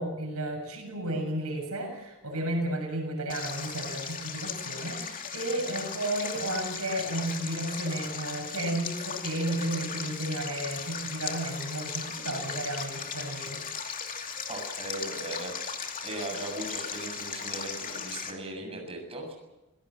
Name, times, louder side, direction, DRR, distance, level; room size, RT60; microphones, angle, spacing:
voice 1, 0.0-13.6, right 1 dB, 80° right, 4 dB, 6.9 m, -33 dB
Stream, 3.3-18.3, left 6 dB, 40° left, 2.7 m, -37 dB
voice 2, 14.5-19.3, right 2 dB, 25° right, 1 dB, 7.1 m, -38 dB
27.0 x 18.0 x 7.6 m, 1.0 s
head